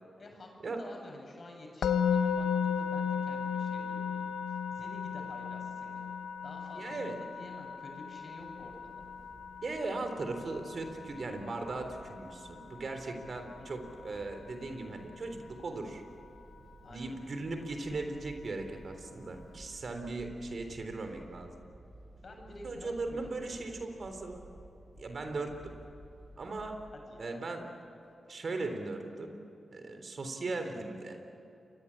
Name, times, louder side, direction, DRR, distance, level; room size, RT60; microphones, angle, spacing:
voice 1, 0.2-6.0 6.4-9.0 13.6-13.8 16.8-17.2 22.2-23.3 23.6-23.7 26.9-27.4, left 2 dB, 60° left, 1 dB, 7.8 m, -50 dB
Musical instrument, 1.8-12.9, left 7 dB, 85° left, 1.0 m, -35 dB
voice 2, 6.7-7.2 9.6-16.0 16.9-21.5 22.6-24.4 25.0-25.7 26.4-26.8 27.2-27.7 28.3-29.4 29.7-31.2, right 3 dB, 60° right, 6 dB, 3.7 m, -38 dB
sound 1, 8.4-26.9, right 1 dB, 35° right, 7.6 m, -55 dB
28.5 x 22.5 x 8.9 m, 2.8 s
cardioid pair, 50°, 0 cm